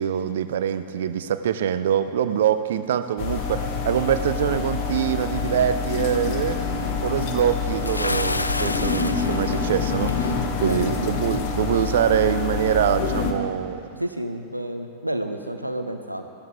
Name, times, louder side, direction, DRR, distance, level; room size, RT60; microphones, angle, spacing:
voice 1, 0.0-6.6 7.0-10.4 10.6-14.0, right 9 dB, 60° right, 12 dB, 0.6 m, -24 dB
sound 1, 3.2-13.3, left 5 dB, 45° left, 1.2 m, -26 dB
Bathtub (filling or washing) / Splash splatter, 7.8-10.3, left 2 dB, 80° left, 0.3 m, -29 dB
voice 2, 8.5-8.8 10.6-10.9 14.0-16.3, right 1 dB, 85° right, 7 dB, 0.8 m, -30 dB
17.0 x 13.5 x 3.5 m, 2.4 s
figure-of-eight pair, 90°, 0 cm